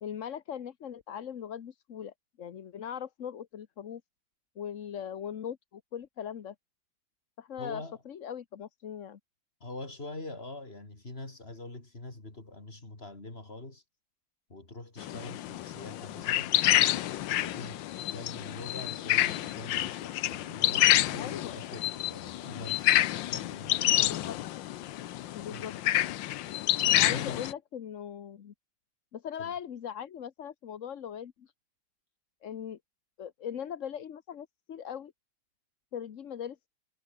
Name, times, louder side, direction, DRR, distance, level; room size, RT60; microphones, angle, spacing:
voice 1, 0.0-4.0 4.6-6.5 7.4-9.2 15.0-15.2 21.1-21.6 24.0-24.6 25.3-26.0 27.0-28.5 29.1-31.5 32.4-32.8 33.2-35.1 35.9-36.6, left 8 dB, 50° left, 1.1 m, -40 dB
voice 2, 7.6-8.0 9.6-13.8 14.5-16.6 17.4-24.4 25.5-25.8 26.9-27.5 29.4-29.5, left 2 dB, 30° left, 4.3 m, -44 dB
sound 1, 15.0-27.5, left 14 dB, 75° left, 1.4 m, -28 dB
omnidirectional pair, 2.2 m